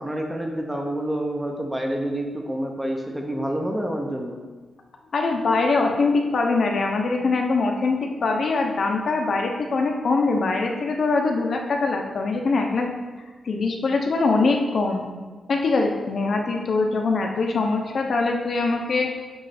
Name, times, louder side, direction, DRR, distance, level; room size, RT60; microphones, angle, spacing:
voice 1, 0.0-4.4, right 1 dB, 5° right, 2 dB, 0.7 m, -28 dB
voice 2, 5.1-12.9 13.4-15.1 15.5-19.1, left 3 dB, 45° left, 2 dB, 0.8 m, -23 dB
8.0 x 3.2 x 5.8 m, 1.3 s
wide cardioid pair, 170°, 0 cm